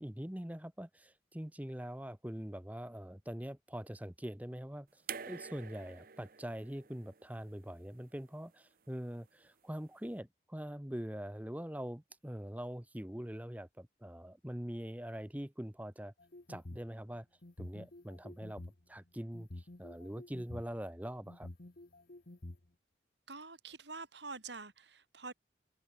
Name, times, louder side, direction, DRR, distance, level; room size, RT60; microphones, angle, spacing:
voice 1, 0.0-4.9 5.3-16.1 16.5-17.3 17.6-18.6 18.9-21.5, equal, 10° right, 1.0 m, -43 dB
sound 1, 5.1-8.2 9.4-9.5, right 7 dB, 50° right, 0.9 m, -48 dB
sound 2, 16.2-16.9 17.4-18.8 19.3-20.6 21.3-22.6, left 1 dB, 50° left, 1.2 m, -48 dB
voice 2, 23.3-25.3, right 4 dB, 65° right, 5.9 m, -46 dB
head